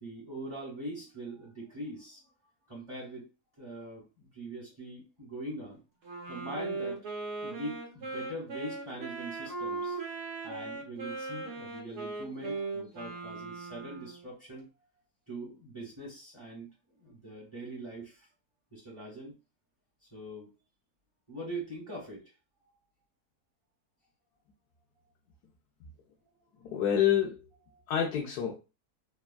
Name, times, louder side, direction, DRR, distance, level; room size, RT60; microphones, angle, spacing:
voice 1, 0.0-2.2 2.7-3.3 3.6-5.8 6.3-7.1 7.4-10.0 10.4-14.7 15.3-16.7 16.9-18.3 18.7-19.3 20.1-20.5 21.3-22.3 27.7-27.8, right 1 dB, 20° right, -7 dB, 1.0 m, -42 dB
Wind instrument woodwind instrument, 6.0-14.3, right 3 dB, 50° right, 1.1 m, -38 dB
voice 2, 26.7-27.4 27.9-28.6, left 9 dB, 85° left, 0 dB, 1.1 m, -27 dB
3.4 x 2.2 x 2.2 m, 0.29 s
omnidirectional pair, 1.7 m